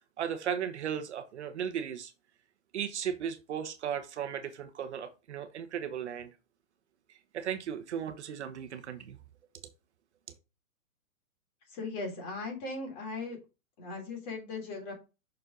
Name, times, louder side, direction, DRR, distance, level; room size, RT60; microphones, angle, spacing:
voice 1, 0.0-2.1 2.7-6.3 7.1-9.2, right 8 dB, 50° right, 1.0 m, -36 dB
voice 2, 11.7-13.4 13.8-14.9, left 3 dB, 30° left, 3.2 m, -38 dB
6.3 x 5.4 x 3.8 m
hypercardioid pair, 165°, 42 cm